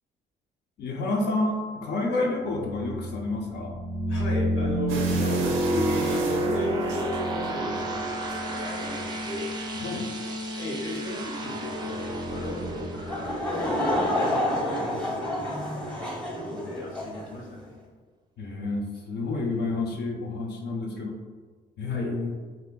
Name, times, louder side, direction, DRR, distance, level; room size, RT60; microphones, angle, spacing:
voice 1, 0.8-3.7 9.7-10.1 18.4-21.2 21.8-22.4, left 2 dB, 60° left, -1 dB, 0.5 m, -29 dB
sound 1, 2.5-15.2, right 1 dB, 20° right, 0.4 m, -30 dB
voice 2, 4.1-9.5 10.5-15.3 15.7-17.8 21.9-22.1, left 1 dB, 90° left, -2 dB, 0.9 m, -35 dB
sound 2, 4.9-7.7 8.1-8.6 9.2-9.4 9.7-9.8, right 3 dB, 90° right, 0.5 m, -38 dB
Laughter / Crowd, 13.1-17.3, left 1 dB, 5° left, 0.8 m, -28 dB
2.4 x 2.1 x 3.6 m, 1.4 s
cardioid pair, 90°, 20 cm